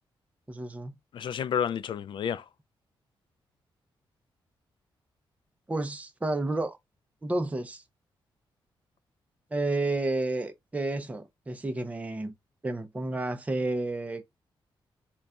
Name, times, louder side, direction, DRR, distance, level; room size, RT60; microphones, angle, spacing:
voice 1, 0.5-0.9 5.7-6.8 7.2-7.8 9.5-12.3 12.6-14.2, right 2 dB, 15° right, 0.6 m, -31 dB
voice 2, 1.1-2.4, left 8 dB, 60° left, 0.4 m, -30 dB
4.0 x 2.3 x 3.5 m
cardioid pair, 100°, 9 cm